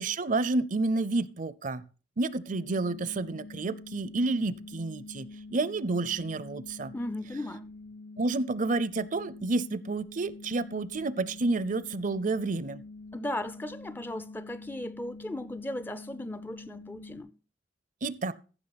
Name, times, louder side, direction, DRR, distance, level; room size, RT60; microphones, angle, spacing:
voice 1, 0.0-1.8 2.2-6.9 8.2-12.8 18.0-18.3, right 3 dB, 50° right, 0.5 m, -30 dB
sound 1, 2.5-17.2, left 3 dB, 70° left, 3.7 m, -46 dB
voice 2, 6.9-7.7 13.1-17.3, left 1 dB, 10° left, 0.4 m, -37 dB
14.5 x 6.2 x 4.1 m
head